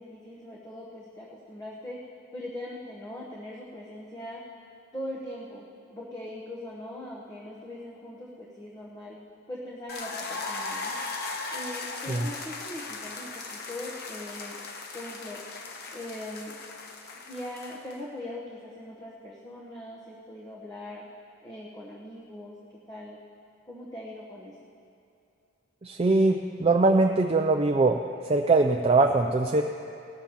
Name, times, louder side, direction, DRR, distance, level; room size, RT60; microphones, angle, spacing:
voice 1, 0.0-2.0 2.3-4.4 4.9-5.6 5.9-9.2 9.5-14.6 14.9-15.4 15.9-16.6 17.3-21.1 21.4-23.2 23.7-24.5, left 1 dB, 15° left, -4 dB, 1.0 m, -41 dB
sound 1, 9.9-18.0, left 3 dB, 50° left, 0.9 m, -38 dB
voice 2, 25.8-28.0 28.3-29.6, right 3 dB, 30° right, 4 dB, 0.4 m, -22 dB
19.0 x 13.0 x 3.0 m, 2.6 s
head